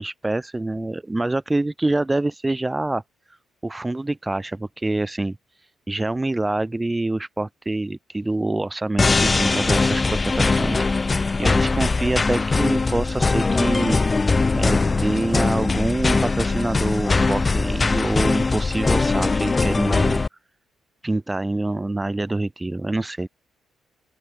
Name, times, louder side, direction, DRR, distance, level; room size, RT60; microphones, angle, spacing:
voice 1, 0.0-3.0 3.3-3.4 3.6-5.4 5.9-14.0 14.5-20.2 21.0-23.3, right 2 dB, 15° right, 4.0 m, -26 dB
sound 1, 9.0-20.3, left 3 dB, 25° left, 0.7 m, -21 dB
open air
cardioid pair, 90°, 0 cm